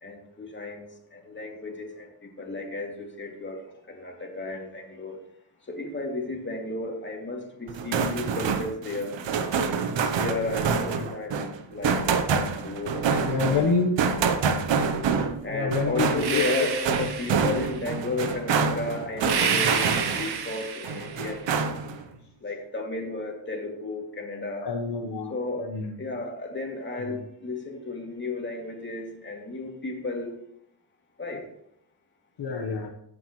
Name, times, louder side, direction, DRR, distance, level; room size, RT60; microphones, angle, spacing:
voice 1, 0.0-3.6 3.9-5.2 5.7-9.1 10.2-11.4 11.7-12.0 12.3-13.3 13.6-13.8 15.4-21.5 22.4-24.7 25.3-25.7 26.0-30.3 31.2-31.4, left 2 dB, 25° left, 0 dB, 2.6 m, -33 dB
sound 1, 7.7-20.4 20.8-22.0, right 5 dB, 75° right, 1.0 m, -27 dB
voice 2, 13.2-13.9 15.5-16.4 24.6-25.9 27.0-27.1 32.4-32.9, left 4 dB, 65° left, 2 dB, 1.3 m, -27 dB
sound 2, 16.2-17.8 19.2-21.3, right 6 dB, 60° right, 1.5 m, -29 dB
15.5 x 7.8 x 3.2 m, 0.72 s
wide cardioid pair, 125°, 44 cm